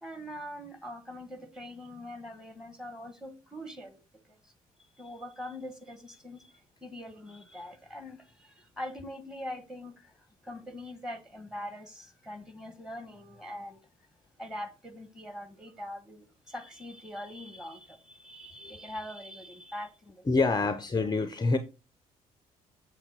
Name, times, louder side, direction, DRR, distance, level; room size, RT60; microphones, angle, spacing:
voice 1, 0.0-4.0 4.3-4.4 5.0-6.5 6.8-10.1 10.4-13.8 14.4-20.2, left 1 dB, 5° right, 1.7 m, -43 dB
voice 2, 20.3-21.6, left 3 dB, 20° left, 0.7 m, -26 dB
7.1 x 6.1 x 3.6 m
hypercardioid pair, 50°, 19 cm